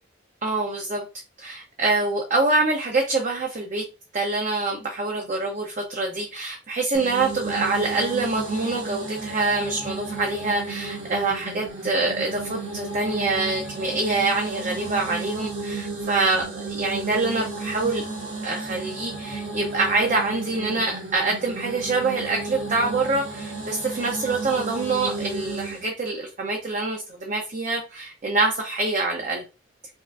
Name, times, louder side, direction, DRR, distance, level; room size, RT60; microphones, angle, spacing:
voice 1, 0.4-1.1 1.4-3.9 4.1-18.1 18.4-29.4, right 3 dB, 40° right, 1 dB, 0.5 m, -25 dB
sound 1, 6.9-25.9, right 3 dB, 75° right, 1.6 m, -33 dB
5.4 x 2.4 x 2.3 m, 0.33 s
head